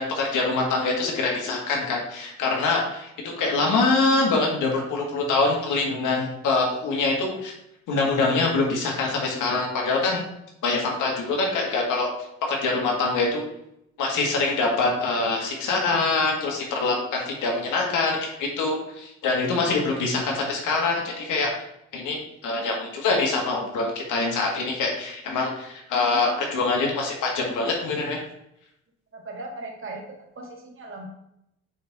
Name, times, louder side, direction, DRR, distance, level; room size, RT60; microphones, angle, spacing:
voice 1, 0.0-7.5 7.9-10.2 10.6-12.1 12.5-13.4 14.0-21.6 21.9-28.2, left 3 dB, 85° left, -1 dB, 2.0 m, -24 dB
voice 2, 3.3-3.7 29.1-30.1 30.4-31.1, right 2 dB, 45° right, 1 dB, 2.1 m, -38 dB
8.9 x 3.8 x 4.1 m, 0.81 s
cardioid pair, 90°, 30 cm